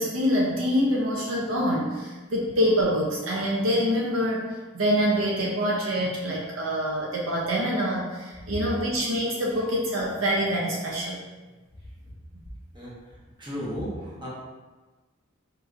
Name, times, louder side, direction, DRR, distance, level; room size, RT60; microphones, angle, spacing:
voice 1, 0.0-4.5 4.7-11.2, equal, 70° right, -3 dB, 0.6 m, -25 dB
voice 2, 13.4-14.3, equal, 25° right, -7 dB, 0.9 m, -34 dB
4.4 x 2.6 x 2.5 m, 1.3 s
head